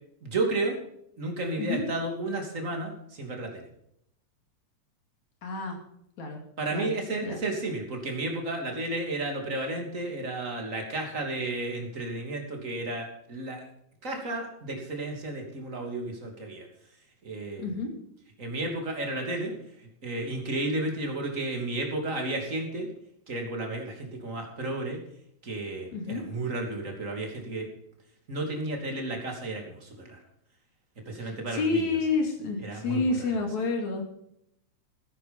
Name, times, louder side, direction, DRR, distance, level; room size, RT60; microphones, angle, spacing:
voice 1, 0.2-0.8 1.2-3.6 6.6-13.7 14.0-16.7 17.2-17.7 18.4-19.5 19.8-22.9 23.3-25.0 25.4-27.7 28.3-30.2 31.1-31.9 32.6-33.3, right 2 dB, 25° right, 2 dB, 3.0 m, -32 dB
voice 2, 5.4-5.8 6.2-6.4 6.7-6.9 7.2-7.4 17.6-17.9 25.9-26.2 31.2-34.0, left 3 dB, 75° left, 3 dB, 4.0 m, -29 dB
14.5 x 10.0 x 5.4 m, 0.75 s
omnidirectional pair, 3.3 m